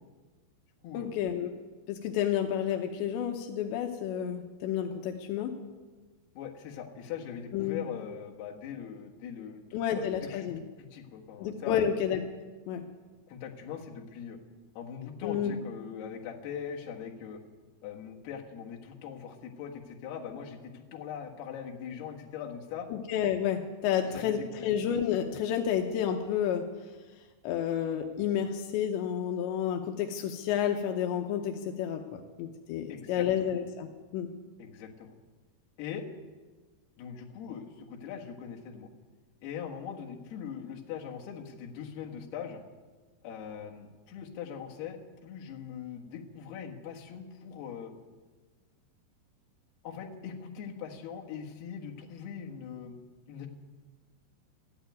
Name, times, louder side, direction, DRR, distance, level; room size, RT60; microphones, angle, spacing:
voice 1, 0.9-1.5 1.9-5.6 7.5-7.8 9.7-10.6 11.4-12.2 12.7-12.9 15.2-15.5 22.9-26.7 27.4-34.3, left 9 dB, 85° left, 4 dB, 3.1 m, -30 dB
voice 2, 6.4-10.5 10.9-11.8 13.3-14.4 14.8-17.4 17.8-22.9 24.1-24.7 32.9-33.5 34.6-35.1 35.8-36.1 37.0-38.9 39.4-42.6 43.2-47.9 49.8-53.0 53.3-53.5, left 8 dB, 70° left, 0 dB, 3.5 m, -41 dB
13.5 x 11.5 x 9.3 m, 1.3 s
omnidirectional pair, 5.0 m